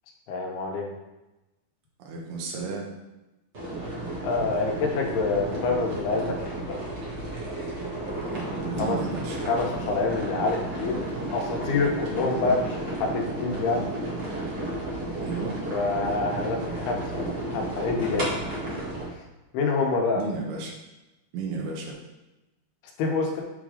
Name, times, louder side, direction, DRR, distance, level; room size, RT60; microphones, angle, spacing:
voice 1, 0.3-0.8 4.2-6.8 8.8-9.0 9.5-11.0 11.3-12.6 13.0-13.9 15.7-17.3 17.5-18.3 19.5-20.2 23.0-23.4, left 3 dB, 80° left, 1 dB, 2.9 m, -26 dB
voice 2, 2.0-2.9 8.1-9.4 12.3-12.6 15.2-15.6 18.5-18.8 20.1-20.7 21.3-22.0, right 4 dB, 80° right, -1 dB, 3.2 m, -34 dB
sound 1, 3.5-19.1, right 1 dB, 60° right, 1.0 m, -32 dB
7.7 x 3.7 x 4.9 m, 1.0 s
omnidirectional pair, 4.5 m